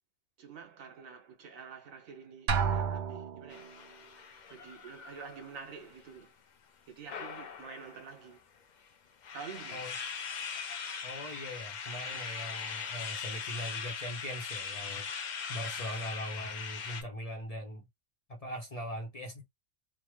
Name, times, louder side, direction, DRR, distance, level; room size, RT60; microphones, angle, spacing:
voice 1, 0.4-3.7 4.5-6.3 6.9-8.4 9.3-9.8, right 6 dB, 80° right, 1.4 m, -48 dB
Drum, 2.5-3.7, right 6 dB, 65° right, 0.8 m, -30 dB
sound 1, 3.5-6.2 7.1-8.2 8.9-9.0 9.2-17.0, left 6 dB, 85° left, 0.4 m, -40 dB
voice 2, 11.0-15.1 15.5-17.8 18.3-19.4, equal, 35° left, 0.7 m, -40 dB
3.4 x 2.0 x 3.1 m
omnidirectional pair, 1.4 m